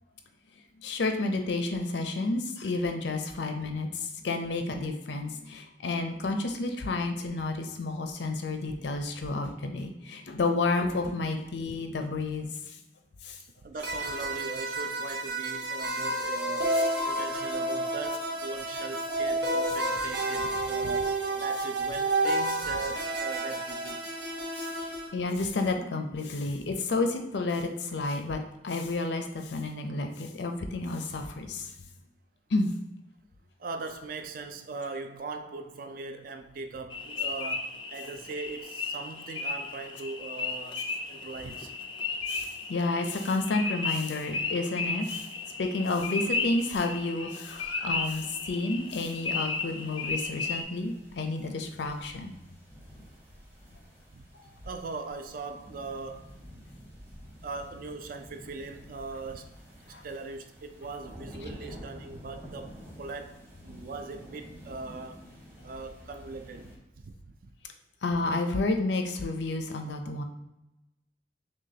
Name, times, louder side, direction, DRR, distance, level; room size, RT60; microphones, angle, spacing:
voice 1, 0.8-12.8 13.2-13.4 16.7-16.8 24.5-31.7 32.5-32.7 42.3-45.3 45.6-52.3 59.9-60.0 68.0-70.2, left 3 dB, 80° left, 0.5 m, -31 dB
voice 2, 13.6-16.8 17.0-24.0 33.6-41.7 54.1-56.3 57.4-59.5 59.9-65.2 65.6-67.1 67.4-67.5, right 3 dB, 50° right, 0.4 m, -40 dB
sound 1, 13.8-25.1, right 1 dB, 80° right, 0.8 m, -30 dB
sound 2, 36.9-50.6, left 3 dB, 25° left, 0.3 m, -34 dB
sound 3, 47.5-66.8, equal, 15° right, 0.8 m, -50 dB
6.2 x 2.2 x 2.8 m
head